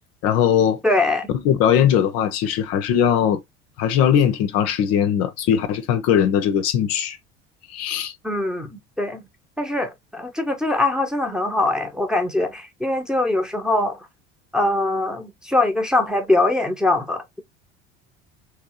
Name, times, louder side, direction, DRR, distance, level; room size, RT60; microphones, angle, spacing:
voice 1, 0.2-0.8 1.4-3.4 3.8-7.2 7.7-8.1, left 9 dB, 45° left, 0.7 m, -19 dB
voice 2, 0.8-1.3 8.2-9.3 9.6-14.1 14.5-17.4, left 2 dB, ahead, 1.0 m, -22 dB
3.5 x 3.2 x 4.6 m
figure-of-eight pair, 65°, 34 cm